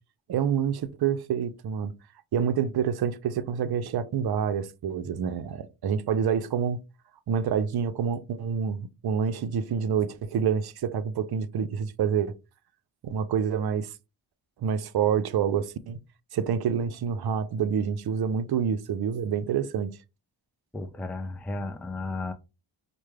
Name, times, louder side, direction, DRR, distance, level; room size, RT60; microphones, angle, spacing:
voice 1, 0.3-1.9 2.3-6.8 7.3-12.3 13.0-13.9 14.6-16.0 16.3-20.0, right 7 dB, 50° right, 0.6 m, -27 dB
voice 2, 20.7-22.3, left 2 dB, 5° left, 0.4 m, -34 dB
4.6 x 2.2 x 3.2 m
cardioid pair, 65°, 49 cm